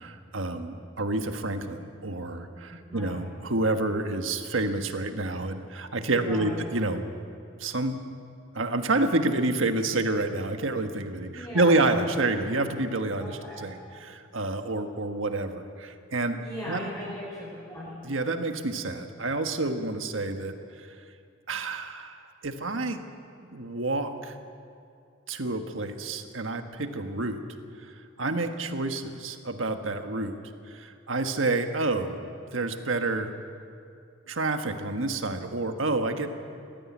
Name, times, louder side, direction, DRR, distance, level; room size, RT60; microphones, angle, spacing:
voice 1, 0.0-7.1 7.6-8.0 8.5-16.4 16.7-16.8 18.0-20.9 21.5-23.0 23.5-24.4 25.3-27.4 28.2-30.3 30.7-32.2 32.5-33.3 34.3-36.3, right 2 dB, 80° right, 6 dB, 1.4 m, -28 dB
voice 2, 6.2-6.6 11.3-12.0 13.2-13.6 16.4-18.0, equal, 15° left, -7 dB, 5.2 m, -38 dB
19.0 x 14.5 x 9.6 m, 2.4 s
head